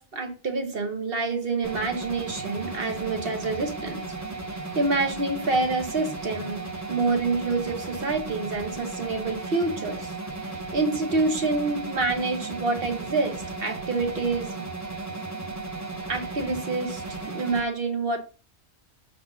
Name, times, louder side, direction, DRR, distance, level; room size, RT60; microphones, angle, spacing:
voice 1, 0.0-4.0 4.5-10.1 10.7-14.5 16.1-17.0 17.3-18.2, right 3 dB, 55° right, 4 dB, 1.3 m, -27 dB
sound 1, 1.6-17.6, right 3 dB, 20° right, 0.6 m, -35 dB
5.6 x 4.2 x 5.6 m, 0.36 s
omnidirectional pair, 1.2 m